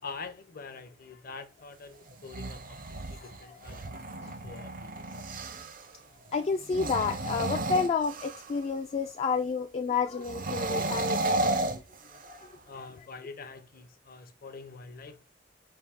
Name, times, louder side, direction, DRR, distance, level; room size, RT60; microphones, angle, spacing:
voice 1, 0.0-5.1 12.7-15.2, left 4 dB, 50° left, 0.7 m, -45 dB
sound 1, 2.1-5.9 6.6-8.6 10.2-12.5, right 2 dB, 50° right, 0.6 m, -33 dB
voice 2, 4.2-4.5 6.3-11.4 12.1-12.6, left 5 dB, 35° left, 0.3 m, -30 dB
4.6 x 2.7 x 3.5 m
head